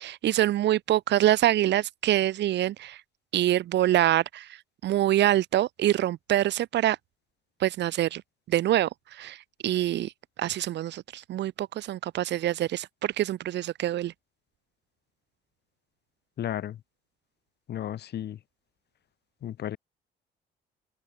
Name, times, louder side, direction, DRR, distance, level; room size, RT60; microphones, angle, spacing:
voice 1, 0.0-3.0 3.3-7.0 7.6-8.2 8.5-10.1 10.4-14.1, right 13 dB, 70° right, 2.8 m, -25 dB
voice 2, 16.4-16.8 17.7-18.4 19.4-19.8, left 11 dB, 65° left, 5.6 m, -33 dB
supercardioid pair, 70°, 19 cm